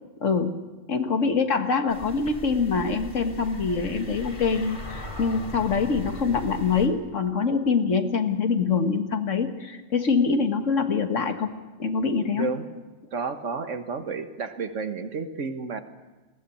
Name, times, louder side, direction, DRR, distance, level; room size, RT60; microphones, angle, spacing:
voice 1, 0.2-0.6 0.9-11.5 11.8-12.5, left 5 dB, 75° left, 6 dB, 1.9 m, -24 dB
sound 1, 1.9-6.9, left 1 dB, 40° left, 2.9 m, -38 dB
voice 2, 12.3-12.6 13.1-15.8, right 4 dB, 75° right, 8 dB, 1.7 m, -31 dB
20.5 x 16.0 x 8.4 m, 1.2 s
omnidirectional pair, 1.3 m